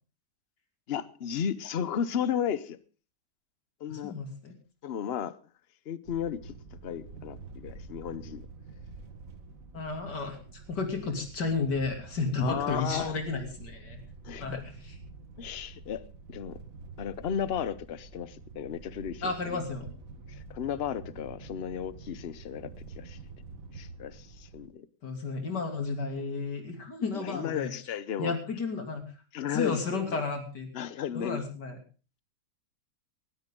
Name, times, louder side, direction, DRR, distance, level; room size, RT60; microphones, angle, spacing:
voice 1, 0.9-2.8 3.8-4.2 4.8-5.4 5.9-6.6 6.8-8.5 12.4-13.2 14.2-14.6 15.4-16.0 16.3-16.6 17.0-19.6 20.3-23.2 23.7-24.9 27.1-28.4 29.3-30.2 30.7-31.5, left 8 dB, 45° left, 0.9 m, -34 dB
voice 2, 3.9-4.5 9.7-14.0 14.4-14.9 19.2-19.9 25.0-27.7 28.2-29.0 29.5-30.7 31.1-31.8, left 4 dB, 75° left, 3.5 m, -32 dB
sound 1, 6.1-24.7, right 3 dB, 55° right, 1.9 m, -47 dB
19.0 x 13.5 x 3.8 m
omnidirectional pair, 1.8 m